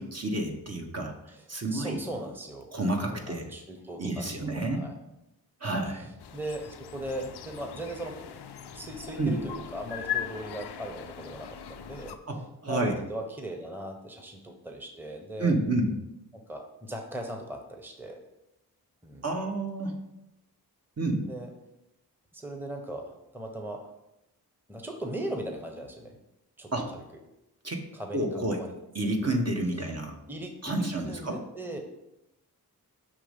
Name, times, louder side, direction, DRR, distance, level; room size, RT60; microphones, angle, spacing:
voice 1, 0.0-1.1 1.5-2.0 2.7-3.5 4.0-4.9 5.6-6.1 9.2-9.3 12.3-13.0 15.4-15.9 19.2-20.0 21.0-21.3 26.7-26.9 27.6-27.8 28.1-28.6 28.9-30.1 30.6-31.4, right 2 dB, 40° right, 2 dB, 1.0 m, -29 dB
voice 2, 1.3-2.8 3.1-4.9 5.8-8.4 8.7-15.6 16.5-18.2 19.0-19.3 21.2-21.5 22.3-23.9 24.7-26.2 26.6-27.2 27.9-28.7 29.6-29.8 30.3-31.8, right 1 dB, 5° right, 3 dB, 0.8 m, -39 dB
sound 1, 6.2-12.2, left 9 dB, 85° left, 0.5 m, -39 dB
6.7 x 3.1 x 5.1 m, 0.89 s
cardioid pair, 55°, 38 cm